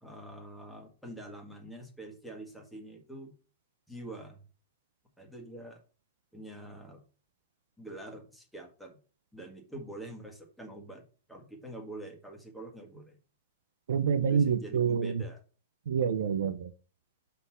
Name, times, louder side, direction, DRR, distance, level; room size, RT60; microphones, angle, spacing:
voice 1, 0.0-3.4 3.9-4.4 5.2-5.8 6.3-7.0 7.8-9.0 9.3-11.0 11.3-13.2 14.3-15.4, right 1 dB, ahead, 1.7 m, -45 dB
voice 2, 13.9-15.2 15.9-16.7, right 7 dB, 80° right, 0.6 m, -27 dB
5.7 x 4.0 x 6.1 m
hypercardioid pair, 145°, 0 cm